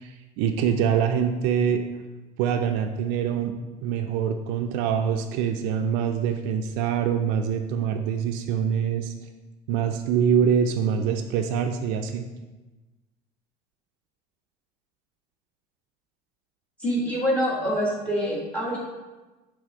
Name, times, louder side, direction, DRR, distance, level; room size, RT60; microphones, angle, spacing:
voice 1, 0.0-1.8 2.4-3.6 3.8-9.1 9.7-12.3, right 7 dB, 65° right, 6 dB, 0.5 m, -24 dB
voice 2, 16.8-18.8, equal, 5° left, -3 dB, 1.3 m, -25 dB
6.3 x 3.5 x 5.1 m, 1.2 s
cardioid pair, 175°, 18 cm